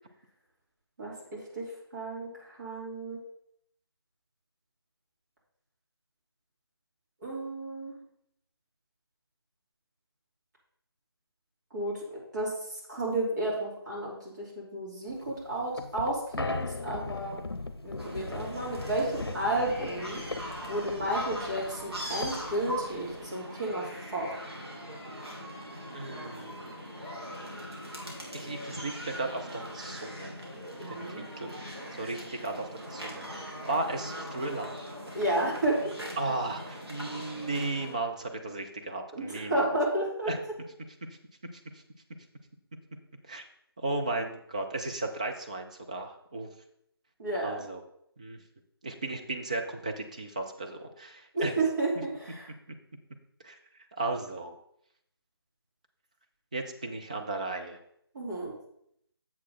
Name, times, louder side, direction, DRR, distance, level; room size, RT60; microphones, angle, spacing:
voice 1, 1.0-1.7 1.9-3.2 7.2-8.0 11.7-17.4 17.8-20.2 20.7-24.3 30.8-31.2 35.1-35.8 39.1-40.3 47.2-47.5 51.3-52.5 58.1-58.5, right 1 dB, 45° right, -5 dB, 3.1 m, -32 dB
sound 1, 15.1-23.3, left 3 dB, 70° left, 0.7 m, -39 dB
sound 2, 18.0-37.9, equal, 80° right, 2.5 m, -41 dB
voice 2, 25.9-26.7 28.3-30.4 30.9-31.5 31.9-34.7 36.2-39.8 40.3-40.4 43.3-43.4 43.8-46.5 47.4-47.8 48.2-48.4 48.8-51.5 53.4-53.6 54.0-54.5 56.5-57.8, right 2 dB, 15° right, 3 dB, 0.4 m, -35 dB
7.4 x 6.4 x 3.9 m, 0.73 s
figure-of-eight pair, 155°, 13 cm